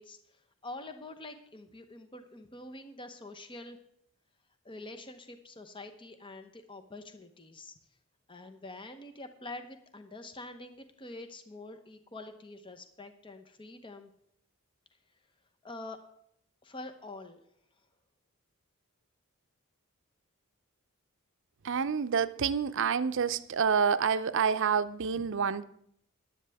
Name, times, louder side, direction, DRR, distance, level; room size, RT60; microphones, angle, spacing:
voice 1, 0.0-3.8 4.6-7.7 8.3-14.1 15.6-16.0 16.6-17.4 25.1-25.3, left 2 dB, 25° left, 0.8 m, -46 dB
voice 2, 21.6-25.6, right 6 dB, 60° right, 0.6 m, -28 dB
15.5 x 11.0 x 3.5 m
head